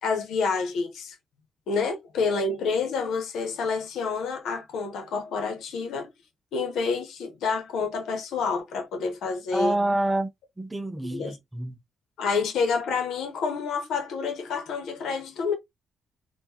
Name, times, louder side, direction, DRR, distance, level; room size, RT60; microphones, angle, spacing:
voice 1, 0.0-1.1 1.7-6.1 6.5-9.7 11.1-11.4 12.2-15.5, left 4 dB, 80° left, 1.0 m, -28 dB
voice 2, 9.5-10.3 10.6-11.8, right 1 dB, 15° right, 0.6 m, -27 dB
3.7 x 2.4 x 2.8 m
cardioid pair, 85°, 0 cm